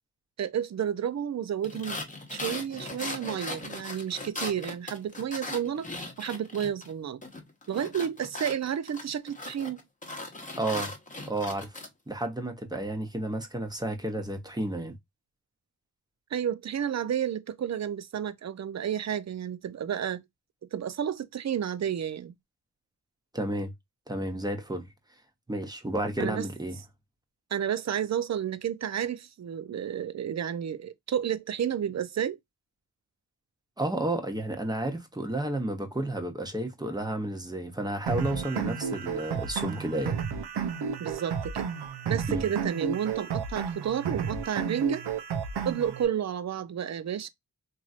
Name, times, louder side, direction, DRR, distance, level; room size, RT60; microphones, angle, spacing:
voice 1, 0.4-2.0 2.3-5.9 6.2-7.2 7.7-9.8 16.3-20.2 20.7-22.3 26.2-26.5 27.5-32.4 41.0-41.7 42.1-45.0 45.6-47.3, right 9 dB, 45° right, 0.5 m, -31 dB
sound 1, 1.6-6.9 7.2-11.9, left 2 dB, 20° left, 1.0 m, -38 dB
voice 2, 10.6-10.9 11.3-15.0 23.3-23.7 24.1-24.9 25.5-26.8 33.8-40.2 42.3-42.5, right 1 dB, 10° right, 0.9 m, -31 dB
sound 2, 38.1-46.1, right 6 dB, 90° right, 0.6 m, -32 dB
3.0 x 2.7 x 2.3 m
cardioid pair, 55°, 39 cm